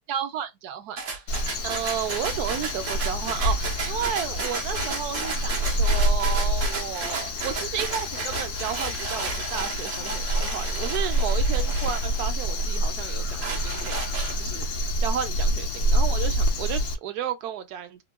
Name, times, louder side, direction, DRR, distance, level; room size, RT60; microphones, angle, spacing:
voice 1, 0.1-1.0 1.3-18.0, right 9 dB, 80° right, 1.2 m, -33 dB
sound 1, 1.0-12.6 13.1-14.6, right 4 dB, 55° right, 1.2 m, -34 dB
Crow, 1.3-16.9, equal, 70° left, 1.3 m, -27 dB
4.5 x 2.3 x 2.2 m
omnidirectional pair, 1.7 m